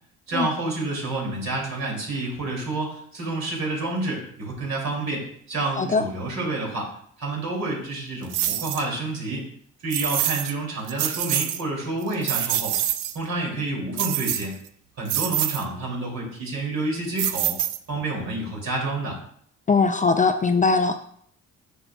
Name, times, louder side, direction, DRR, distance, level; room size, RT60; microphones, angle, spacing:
voice 1, 0.3-6.9 7.2-9.5 9.8-12.7 13.1-14.5 15.0-17.5 17.9-19.2, right 2 dB, 60° right, -2 dB, 2.7 m, -29 dB
sound 1, 8.3-8.8 9.9-10.5 10.9-11.6 12.0-13.2 14.0-14.7 15.1-15.6 17.2-18.0, right 12 dB, 90° right, 0.5 m, -26 dB
voice 2, 19.7-21.0, left 4 dB, 25° left, 8 dB, 0.4 m, -20 dB
8.3 x 5.5 x 2.3 m, 0.64 s
cardioid pair, 90°, 30 cm